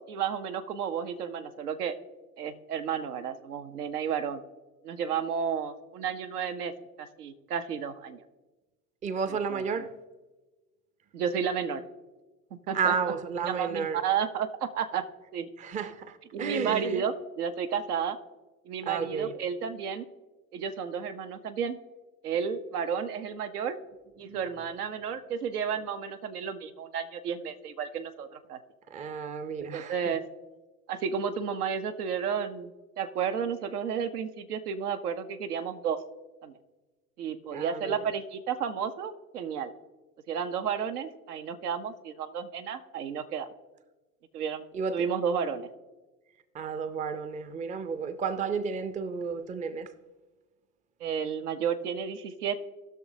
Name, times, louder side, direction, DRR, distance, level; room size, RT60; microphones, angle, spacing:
voice 1, 0.1-1.9 2.4-4.4 4.8-6.7 7.0-8.2 9.3-9.9 11.1-11.8 12.7-12.9 13.5-15.0 15.3-15.5 16.3-18.2 18.6-20.0 20.5-21.8 22.2-23.8 24.2-28.6 29.6-30.2 30.9-32.7 33.0-36.0 36.4-36.6 37.2-39.7 40.3-43.5 44.3-44.6 44.9-45.7 51.0-52.6, right 7 dB, 75° right, 0.9 m, -32 dB
voice 2, 9.0-9.9 12.7-14.0 15.6-17.0 18.9-19.3 24.3-24.4 28.9-30.1 37.5-38.0 44.7-45.0 46.5-49.9, right 6 dB, 15° right, 0.6 m, -32 dB
18.5 x 6.4 x 2.7 m
hypercardioid pair, 85°, 46 cm